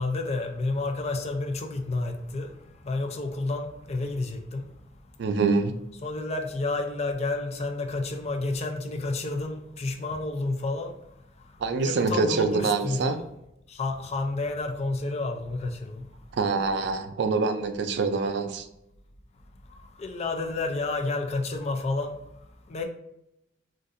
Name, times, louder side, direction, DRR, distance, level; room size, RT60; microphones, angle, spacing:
voice 1, 0.0-2.5 2.8-4.7 6.0-10.9 11.7-13.2 13.7-16.0 20.0-22.2 22.7-22.8, left 2 dB, 35° left, 4 dB, 0.4 m, -30 dB
voice 2, 5.2-5.7 11.6-13.2 16.3-18.7, right 4 dB, 70° right, 8 dB, 0.4 m, -25 dB
3.9 x 2.5 x 2.5 m, 0.83 s
head